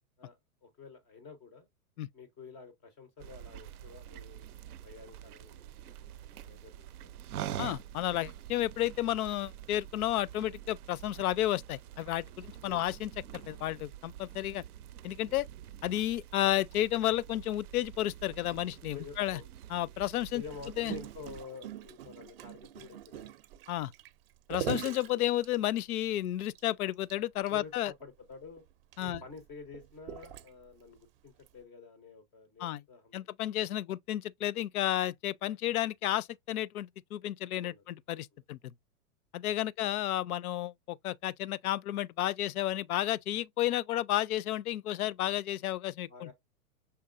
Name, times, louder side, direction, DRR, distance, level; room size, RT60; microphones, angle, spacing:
voice 1, 0.2-1.7 2.1-4.5 4.8-7.2 12.6-12.9 18.9-19.5 20.3-23.3 25.1-25.3 27.5-28.6 29.0-33.8 37.6-37.8 38.3-38.4 46.1-46.3, left 5 dB, 10° left, 0.3 m, -49 dB
sound 1, 3.2-21.5, right 11 dB, 85° right, 0.6 m, -46 dB
voice 2, 7.6-14.6 15.0-15.5 15.8-19.4 19.7-20.4 20.8-20.9 23.7-23.9 24.5-27.9 29.0-29.2 32.6-32.8 33.1-38.6 39.3-46.3, left 13 dB, 75° left, 0.5 m, -32 dB
Gurgling, 20.5-26.0 26.6-26.7 26.9-27.1 27.5-27.6 28.3-30.8 31.5-31.6, right 12 dB, 40° right, 0.5 m, -42 dB
5.7 x 3.5 x 2.4 m
hypercardioid pair, 130°, 44 cm